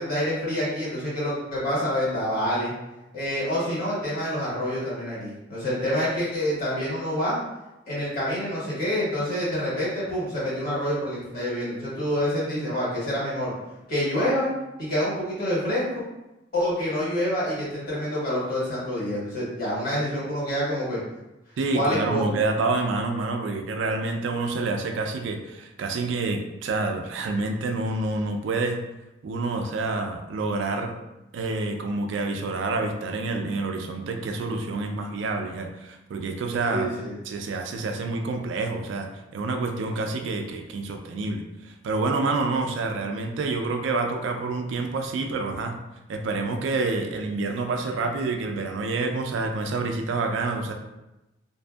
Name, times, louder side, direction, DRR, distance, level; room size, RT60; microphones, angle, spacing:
voice 1, 0.0-2.7 3.1-7.4 7.9-13.5 13.9-14.5 14.8-16.0 16.5-21.0 21.7-22.2 36.7-37.1, equal, 50° left, -8 dB, 1.4 m, -27 dB
voice 2, 21.6-28.8 29.2-30.9 31.3-36.9 37.3-45.8 46.1-50.7, right 3 dB, 70° right, 4 dB, 0.3 m, -28 dB
2.5 x 2.5 x 2.3 m, 0.96 s
head